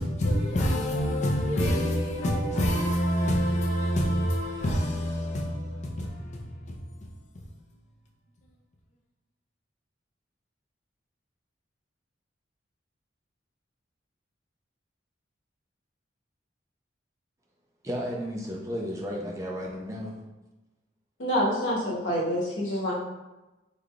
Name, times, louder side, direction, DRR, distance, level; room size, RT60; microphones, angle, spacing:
voice 1, 0.0-7.4, equal, 40° left, 0.5 m, -27 dB
voice 2, 17.8-20.1, equal, 15° right, 0.5 m, -33 dB
voice 3, 21.2-22.9, equal, 85° left, 1.1 m, -27 dB
3.6 x 3.3 x 2.2 m
head